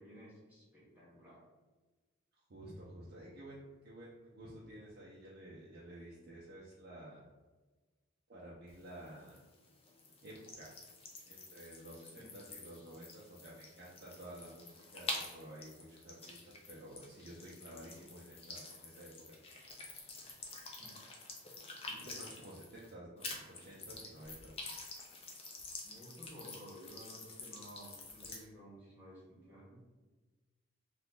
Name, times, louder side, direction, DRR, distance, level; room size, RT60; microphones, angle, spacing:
voice 1, 0.0-1.4 12.0-12.3 20.8-21.0 21.9-22.4 25.8-29.8, equal, 10° right, -9 dB, 1.2 m, -54 dB
voice 2, 2.5-7.2 8.3-9.4 10.2-10.8 11.3-19.1 22.0-24.5, right 1 dB, 50° right, -6 dB, 0.5 m, -52 dB
sound 1, 8.7-22.9 23.2-28.4, left 3 dB, 30° left, 0.4 m, -48 dB
2.8 x 2.4 x 3.6 m, 1.2 s
head